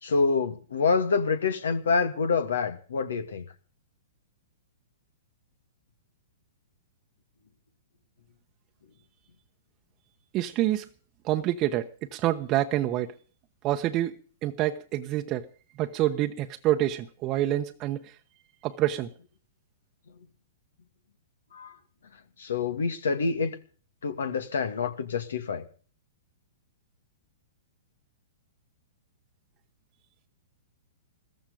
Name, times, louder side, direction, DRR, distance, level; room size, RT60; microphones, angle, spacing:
voice 1, 0.0-3.5 20.1-20.3 21.5-21.8 22.1-23.6 24.0-25.6, left 4 dB, 70° left, 2.3 m, -27 dB
voice 2, 10.3-10.9 11.2-13.1 13.6-14.1 14.4-15.5 15.8-18.1 18.6-19.1, right 13 dB, 35° right, 1.1 m, -27 dB
16.5 x 14.5 x 5.2 m
figure-of-eight pair, 110°, 0 cm